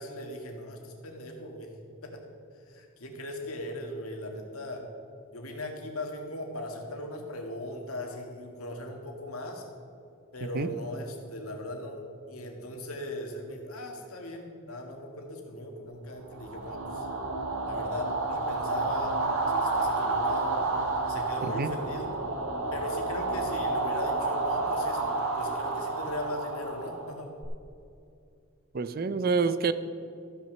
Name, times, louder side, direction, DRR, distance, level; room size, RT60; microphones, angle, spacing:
voice 1, 0.0-1.7 2.0-2.2 2.7-4.8 5.3-9.6 10.3-12.0 12.3-17.1 17.6-20.6 21.0-22.1 22.7-25.0 25.3-27.3, left 1 dB, 80° left, 2 dB, 1.9 m, -38 dB
sound 1, 16.3-27.4, right 3 dB, 80° right, 1.4 m, -30 dB
voice 2, 28.7-29.7, right 4 dB, 45° right, 13 dB, 0.5 m, -27 dB
13.5 x 6.1 x 6.7 m, 2.5 s
head